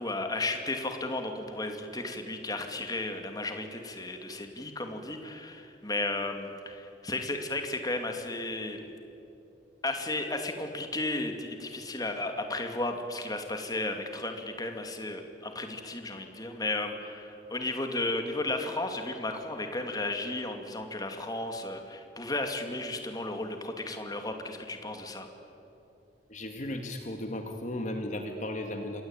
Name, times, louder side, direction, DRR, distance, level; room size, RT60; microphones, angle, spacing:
voice 1, 0.0-8.8 9.8-25.3, left 2 dB, 20° left, 5 dB, 2.4 m, -34 dB
voice 2, 26.3-29.0, left 1 dB, 40° left, 5 dB, 1.8 m, -35 dB
28.5 x 23.5 x 9.0 m, 2.9 s
head